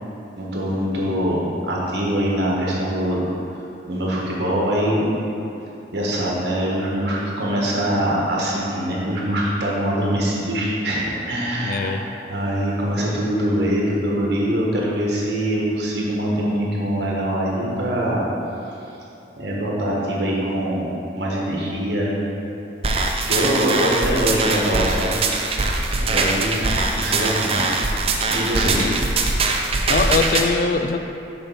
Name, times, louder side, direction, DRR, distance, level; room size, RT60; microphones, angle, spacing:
voice 1, 0.4-3.3 3.9-5.1 5.9-11.9 12.3-18.2 19.4-22.1 23.2-25.2 26.0-26.6 27.0-27.6 28.3-28.8, equal, 70° right, -4 dB, 1.5 m, -23 dB
voice 2, 11.6-12.1 28.7-29.1 29.9-31.0, left 4 dB, 50° left, 8 dB, 0.3 m, -22 dB
sound 1, 22.8-30.5, right 3 dB, 35° right, 0.5 m, -22 dB
6.8 x 4.1 x 5.7 m, 2.8 s
head